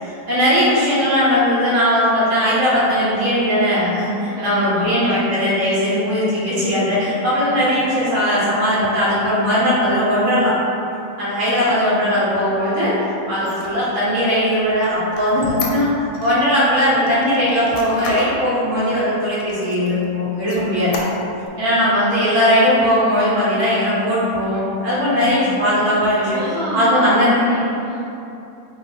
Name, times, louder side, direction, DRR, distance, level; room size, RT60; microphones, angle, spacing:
voice 1, 0.0-10.5 11.2-12.9 13.3-15.9 16.2-20.9 21.6-26.4 26.7-27.4, equal, 45° right, -9 dB, 1.2 m, -18 dB
voice 2, 4.3-5.4 5.8-6.0 7.4-8.0 11.4-12.3 13.3-13.6 25.1-25.4 26.3-28.0, right 1 dB, 75° right, -8 dB, 1.6 m, -29 dB
Squeak, 13.3-16.4 16.8-18.4 18.9-19.0 19.4-20.0 20.4-21.5, left 3 dB, 80° left, 1.3 m, -31 dB
3.1 x 2.7 x 4.1 m, 2.8 s
omnidirectional pair, 2.2 m